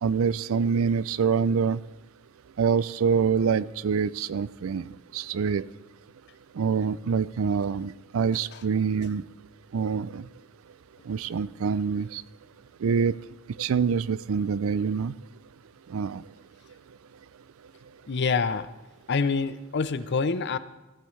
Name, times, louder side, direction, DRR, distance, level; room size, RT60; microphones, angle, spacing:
voice 1, 0.0-1.8 2.6-5.7 6.6-9.2 9.7-10.3 11.1-12.2 12.8-13.1 13.6-15.1 15.9-16.2, right 6 dB, 80° right, 19 dB, 0.4 m, -25 dB
voice 2, 18.1-18.7 19.1-20.6, left 4 dB, 55° left, 14 dB, 0.6 m, -26 dB
15.0 x 14.5 x 3.2 m, 1.1 s
head